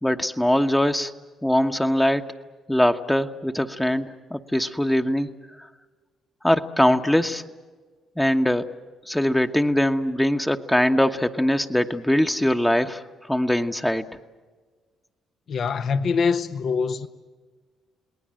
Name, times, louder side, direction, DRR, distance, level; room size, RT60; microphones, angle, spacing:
voice 1, 0.0-1.1 1.4-2.3 2.7-5.3 5.6-5.7 6.4-7.4 8.2-8.6 9.1-13.0 13.3-14.1, left 1 dB, 10° left, 1.2 m, -22 dB
voice 2, 15.5-17.1, left 5 dB, 60° left, 1.2 m, -24 dB
29.5 x 19.0 x 7.7 m
hypercardioid pair, 50°, 0 cm